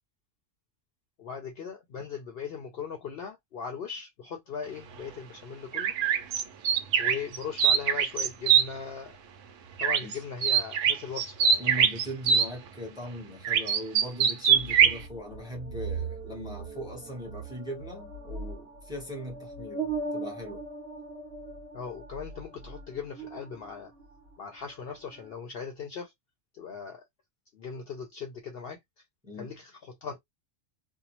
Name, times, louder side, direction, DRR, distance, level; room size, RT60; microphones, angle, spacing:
voice 1, 1.2-6.0 7.0-9.1 9.8-11.9 21.7-23.9 24.4-26.1 26.5-27.0 27.5-28.8 29.4-30.2, left 6 dB, 60° left, 0.7 m, -39 dB
sound 1, 5.7-8.6 9.8-10.1 10.4-12.5 13.4-15.0, right 8 dB, 80° right, 1.0 m, -23 dB
voice 2, 11.6-20.6 29.2-29.5, equal, 5° right, 0.9 m, -40 dB
sound 2, 14.5-24.3 24.6-25.3, right 4 dB, 55° right, 1.0 m, -39 dB
2.7 x 2.1 x 2.9 m
omnidirectional pair, 1.3 m